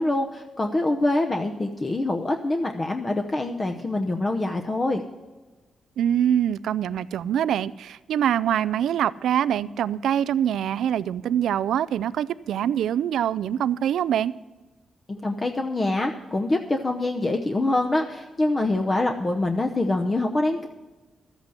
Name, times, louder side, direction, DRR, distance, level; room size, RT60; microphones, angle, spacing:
voice 1, 0.0-5.0 15.1-20.7, left 2 dB, 30° left, 4 dB, 0.8 m, -25 dB
voice 2, 6.0-14.3, right 10 dB, 85° right, 17 dB, 0.3 m, -24 dB
12.5 x 8.2 x 6.4 m, 1.2 s
cardioid pair, 95°, 0 cm